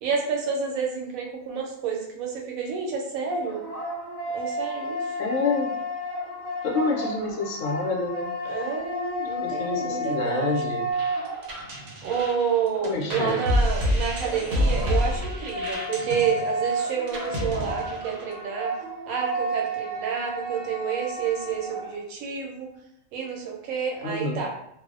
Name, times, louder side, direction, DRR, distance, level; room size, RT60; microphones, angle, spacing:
voice 1, 0.0-3.6 4.3-5.1 8.4-10.6 12.0-18.8 19.1-22.7 23.1-24.5, right 6 dB, 90° right, 0 dB, 1.0 m, -29 dB
sound 1, 3.2-11.9 14.2-21.9, right 1 dB, 20° right, 0.6 m, -32 dB
voice 2, 5.2-5.7 6.6-8.3 9.4-10.9 12.8-13.4 24.0-24.4, left 3 dB, 75° left, 0 dB, 0.9 m, -28 dB
sound 2, 10.9-18.4, equal, 60° right, 0.6 m, -28 dB
2.6 x 2.0 x 2.4 m, 0.76 s
omnidirectional pair, 1.4 m